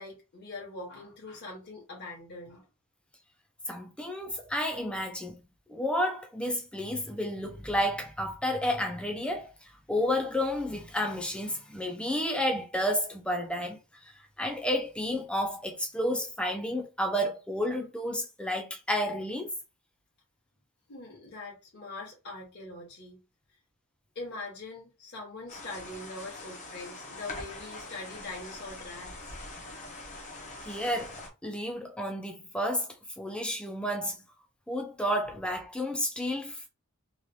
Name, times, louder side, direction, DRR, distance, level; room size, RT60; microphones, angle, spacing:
voice 1, 0.0-2.7 20.9-23.2 24.1-29.4, left 2 dB, 50° left, 1.3 m, -42 dB
voice 2, 3.7-5.4 5.7-9.5 9.9-13.8 14.4-19.5 30.6-34.3 34.7-36.7, equal, 5° left, 0.6 m, -31 dB
sound 1, 25.5-31.3, left 2 dB, 35° left, 0.9 m, -43 dB
3.2 x 2.5 x 2.8 m
head